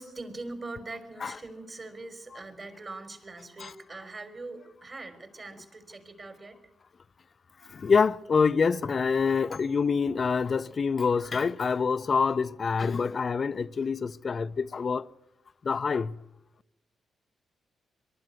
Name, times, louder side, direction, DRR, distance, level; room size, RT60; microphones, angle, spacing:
voice 1, 0.0-6.6, right 2 dB, 45° right, 3.9 m, -42 dB
voice 2, 7.7-15.1 15.6-16.2, left 5 dB, 50° left, 0.6 m, -26 dB
22.5 x 12.0 x 9.5 m
hypercardioid pair, 45°, 0 cm